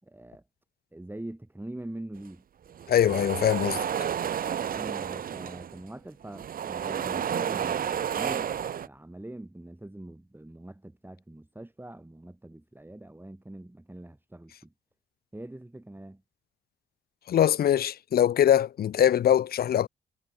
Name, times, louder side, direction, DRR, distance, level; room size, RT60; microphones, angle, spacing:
voice 1, 0.0-0.4 0.9-2.4 4.5-8.5 8.8-14.7 15.3-16.2, right 1 dB, 10° right, 3.4 m, -43 dB
sound 1, 2.7-5.9 6.2-8.9, right 9 dB, 50° right, 0.9 m, -31 dB
voice 2, 2.9-3.8 17.3-19.9, left 10 dB, 55° left, 0.9 m, -22 dB
hypercardioid pair, 45°, 19 cm